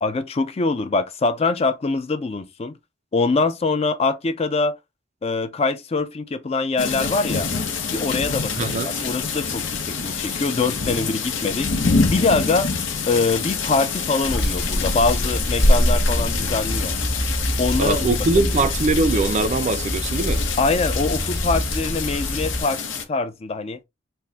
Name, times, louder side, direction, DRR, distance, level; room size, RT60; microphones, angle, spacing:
voice 1, 0.0-2.7 3.1-4.7 5.2-7.5 7.9-11.7 12.1-12.7 13.1-16.9 17.6-18.1 18.3-18.6 20.6-22.8 23.1-23.8, left 3 dB, 30° left, 0.4 m, -23 dB
sound 1, 6.8-23.0, left 5 dB, 85° left, 0.8 m, -27 dB
voice 2, 8.6-8.9 17.8-20.4, right 3 dB, 40° right, 0.4 m, -22 dB
Hands, 14.2-22.6, equal, 55° left, 1.5 m, -24 dB
4.2 x 2.1 x 3.4 m
head